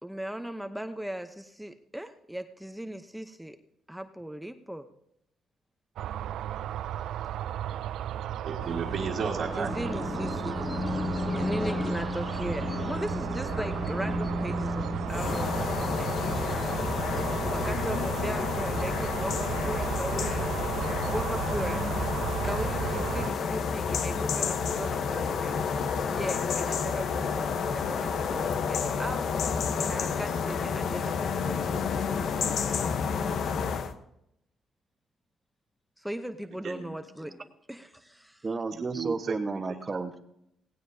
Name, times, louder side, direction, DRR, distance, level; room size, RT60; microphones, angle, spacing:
voice 1, 0.0-3.6 3.9-4.9 9.6-11.0 11.3-16.5 17.5-20.5 21.1-21.8 22.4-25.6 26.1-29.3 29.7-31.7 32.0-33.6 36.0-38.5, right 1 dB, 5° right, 8 dB, 0.8 m, -38 dB
sound 1, 6.0-23.3, right 11 dB, 80° right, 0.4 m, -35 dB
voice 2, 8.4-9.9 36.6-36.7 38.7-39.3, right 5 dB, 60° right, -3 dB, 1.7 m, -33 dB
sound 2, 8.6-17.9, left 2 dB, 25° left, 1.0 m, -34 dB
sound 3, 15.1-33.9, left 6 dB, 65° left, 1.0 m, -30 dB
voice 3, 36.6-37.0 38.4-40.2, right 3 dB, 30° right, 7 dB, 1.2 m, -33 dB
18.0 x 17.0 x 2.8 m, 0.79 s
cardioid pair, 90°, 0 cm